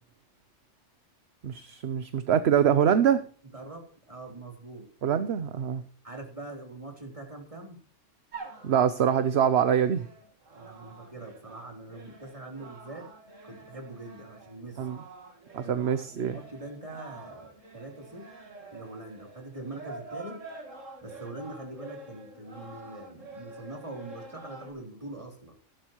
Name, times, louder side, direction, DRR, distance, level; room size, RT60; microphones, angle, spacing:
voice 1, 1.4-3.2 5.0-5.8 8.6-10.1 14.8-15.0 15.5-16.4, right 8 dB, 60° right, 12 dB, 1.0 m, -24 dB
voice 2, 3.4-4.9 6.0-7.8 10.6-13.1 13.4-14.9 15.6-15.9 16.2-18.3 18.7-20.4 21.0-25.6, right 2 dB, 25° right, 2 dB, 3.4 m, -43 dB
sound 1, 8.3-24.7, right 3 dB, 90° right, 2.2 m, -47 dB
16.0 x 11.5 x 3.0 m, 0.43 s
omnidirectional pair, 1.3 m